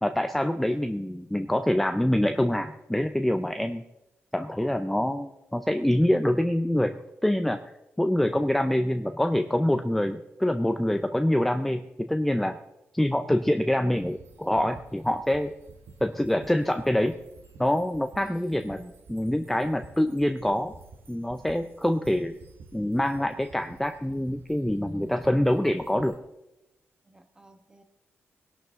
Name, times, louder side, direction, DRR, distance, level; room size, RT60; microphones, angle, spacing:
voice 1, 0.0-3.8 4.3-7.6 8.0-12.6 12.9-15.5 16.0-17.1 17.6-18.8 19.1-20.7 21.1-22.3 22.7-26.2, left 1 dB, 5° left, 7 dB, 0.5 m, -25 dB
sound 1, 13.9-26.2, right 4 dB, 60° right, 1.7 m, -52 dB
voice 2, 18.2-18.9 27.0-27.8, right 1 dB, 15° right, 8 dB, 1.2 m, -50 dB
20.5 x 11.5 x 3.7 m, 0.92 s
cardioid pair, 125°, 5 cm